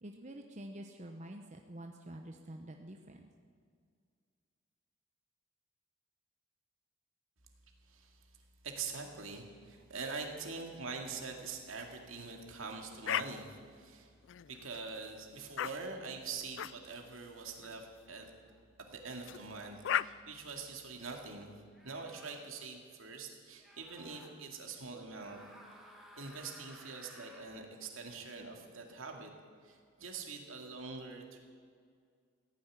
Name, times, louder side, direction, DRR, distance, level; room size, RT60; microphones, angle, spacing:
voice 1, 0.0-3.3, right 1 dB, 35° right, 4 dB, 0.8 m, -48 dB
voice 2, 7.9-8.3 8.6-14.1 14.5-18.3 18.8-25.4 26.2-29.3 29.6-31.4, right 4 dB, 75° right, 2 dB, 2.3 m, -44 dB
sound 1, 13.1-13.3 14.2-14.8 15.6-15.7 16.6-16.7 17.6-17.8 19.3-19.4 19.8-20.1, left 10 dB, 60° left, 0.3 m, -34 dB
sound 2, 18.4-18.6 19.8-20.3 21.7-22.4 23.6-24.3 25.1-27.5, equal, ahead, 1.8 m, -56 dB
16.0 x 9.9 x 9.1 m, 2.1 s
head